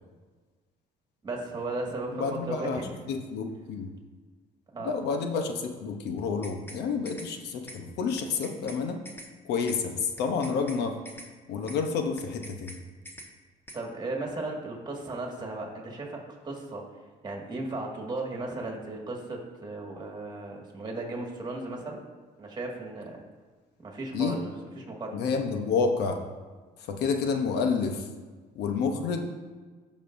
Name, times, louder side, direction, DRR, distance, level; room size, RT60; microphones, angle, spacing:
voice 1, 1.2-3.1 4.7-4.9 13.7-16.8 17.2-22.0 22.4-23.2 23.8-25.2, right 2 dB, 25° right, -1 dB, 1.9 m, -36 dB
voice 2, 2.1-2.8 3.1-3.9 4.8-9.0 9.4-11.0 11.5-12.8 24.1-24.4 25.1-26.2 26.9-28.1 28.6-29.3, left 5 dB, 80° left, 5 dB, 0.9 m, -29 dB
sound 1, 6.2-6.8 7.1-7.3 7.7-7.8 8.2-8.8 9.1-9.3 9.7-9.8 10.2-10.8 11.1-11.3 11.7-11.8 12.2-12.8 13.1-13.3 13.7-13.8, equal, 15° left, 1.2 m, -45 dB
15.5 x 5.4 x 2.6 m, 1.4 s
cardioid pair, 110°, 17 cm